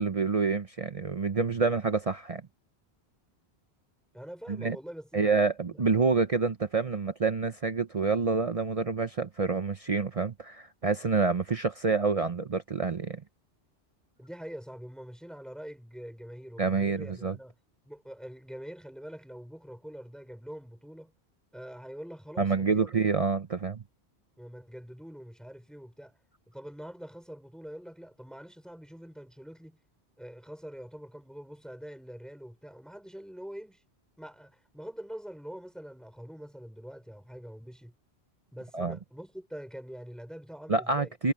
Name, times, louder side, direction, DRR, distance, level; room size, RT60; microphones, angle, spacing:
voice 1, 0.0-2.4 4.5-4.8 5.1-13.2 16.6-17.4 22.4-23.8 38.7-39.0 40.7-41.3, right 4 dB, 40° right, 0.7 m, -27 dB
voice 2, 4.1-5.3 5.7-5.8 14.2-17.5 17.9-21.1 21.5-22.9 24.4-26.2 26.5-29.8 30.2-33.8 34.2-37.9 38.5-41.1, equal, ahead, 5.2 m, -44 dB
omnidirectional pair, 1.1 m